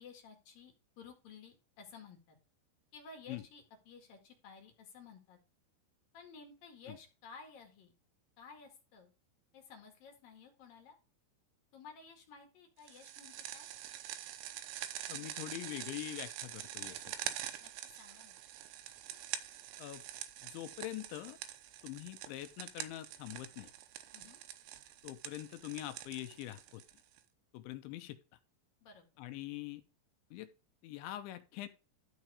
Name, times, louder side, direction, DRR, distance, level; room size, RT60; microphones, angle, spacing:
voice 1, 0.0-2.4 2.9-5.4 6.1-7.9 8.4-9.1 9.5-11.0 11.7-13.7 17.6-18.3 24.1-24.4 28.8-29.1, left 5 dB, 55° left, 3 dB, 3.0 m, -55 dB
sound 1, 12.9-27.2, right 12 dB, 75° right, 3.0 m, -45 dB
voice 2, 15.1-17.3 19.8-20.0 20.4-21.4 21.8-23.7 25.0-26.8 27.5-28.2 29.2-29.8 30.3-30.5 30.8-31.7, left 14 dB, 80° left, 9 dB, 2.9 m, -44 dB
13.0 x 4.7 x 4.8 m, 0.32 s
omnidirectional pair, 5.8 m